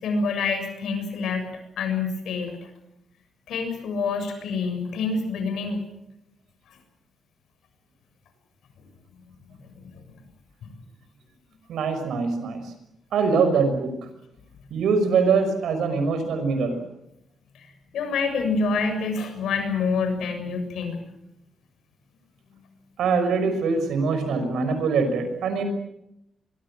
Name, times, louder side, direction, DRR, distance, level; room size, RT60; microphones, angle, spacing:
voice 1, 0.0-1.5 1.8-2.6 3.5-5.8 9.5-10.0 10.6-10.7 17.5-21.0, left 4 dB, 85° left, 7 dB, 7.1 m, -27 dB
voice 2, 11.7-12.6 13.1-14.1 14.7-16.8 23.0-25.6, right 5 dB, 85° right, 8 dB, 6.0 m, -23 dB
25.5 x 23.0 x 7.7 m, 0.82 s
cardioid pair, 135°, 0 cm